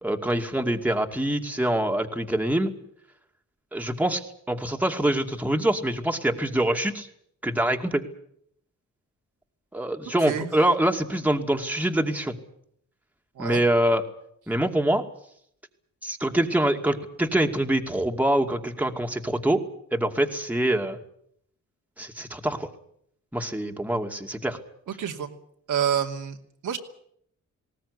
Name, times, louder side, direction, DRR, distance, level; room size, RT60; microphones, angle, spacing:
voice 1, 0.0-2.7 3.7-4.2 4.5-7.1 7.4-8.0 9.7-12.3 13.4-14.0 14.5-15.0 16.0-19.6 19.9-21.0 22.0-22.7 23.3-24.6, right 1 dB, 5° right, 3 dB, 2.4 m, -25 dB
voice 2, 10.2-10.5 13.3-13.6 25.0-25.3 25.7-26.4 26.6-26.8, right 8 dB, 85° right, 2 dB, 2.8 m, -27 dB
20.0 x 18.0 x 9.8 m, 0.69 s
cardioid pair, 90°, 30 cm